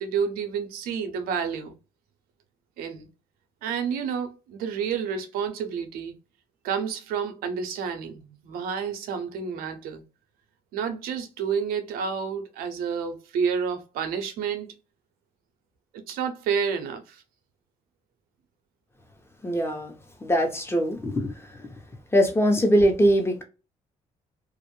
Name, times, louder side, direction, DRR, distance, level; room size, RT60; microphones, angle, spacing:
voice 1, 0.0-1.7 2.8-3.1 3.6-6.2 6.6-10.0 10.7-14.8 15.9-17.2, right 6 dB, 85° right, 0.6 m, -30 dB
voice 2, 19.4-19.9 20.2-21.3 22.1-23.4, equal, 15° left, 0.9 m, -21 dB
2.4 x 2.1 x 3.0 m
supercardioid pair, 70°, 15 cm